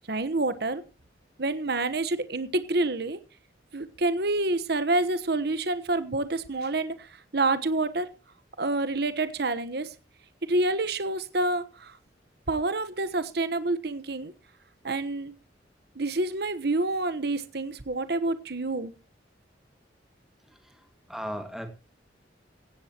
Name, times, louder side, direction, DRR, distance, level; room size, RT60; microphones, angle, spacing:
voice 1, 0.1-0.8 1.4-3.2 3.7-8.1 8.6-9.9 10.4-12.0 12.5-14.3 14.8-15.3 16.0-18.9, right 2 dB, 60° right, 13 dB, 1.1 m, -28 dB
voice 2, 20.6-21.7, equal, ahead, 7 dB, 1.9 m, -37 dB
16.5 x 16.5 x 2.9 m, 0.32 s
head